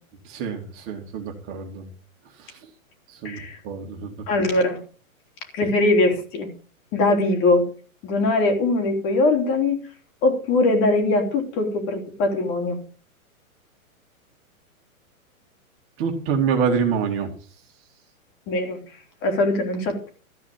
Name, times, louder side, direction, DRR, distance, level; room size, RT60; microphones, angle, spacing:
voice 1, 0.2-1.9 2.4-2.6 3.1-4.2 16.0-17.3, right 6 dB, 30° right, 2 dB, 2.5 m, -26 dB
voice 2, 3.2-3.6 4.3-4.8 5.5-6.5 6.9-7.6 8.0-9.8 10.2-12.8 18.5-18.8 19.2-20.1, left 2 dB, 30° left, 3 dB, 3.7 m, -21 dB
14.0 x 5.0 x 8.7 m, 0.39 s
hypercardioid pair, 145°, 42 cm